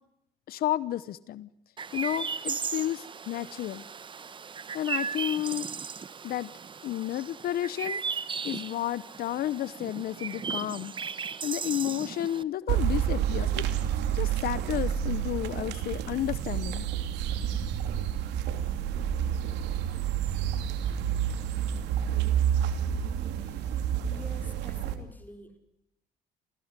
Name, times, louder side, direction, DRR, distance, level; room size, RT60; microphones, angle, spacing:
voice 1, 0.5-1.5 1.9-3.8 4.7-5.7 6.2-6.5 6.8-8.0 8.4-10.9 11.4-13.6 14.1-16.9, left 12 dB, 65° left, 18 dB, 0.9 m, -31 dB
Chirp tweet, 1.8-12.4, right 5 dB, 30° right, 0.9 m, -36 dB
sound 1, 12.7-24.9, right 9 dB, 90° right, 2.7 m, -29 dB
voice 2, 23.4-23.8 24.1-25.6, equal, 10° left, 6 dB, 5.2 m, -48 dB
28.5 x 16.0 x 9.8 m, 0.82 s
cardioid pair, 110°, 17 cm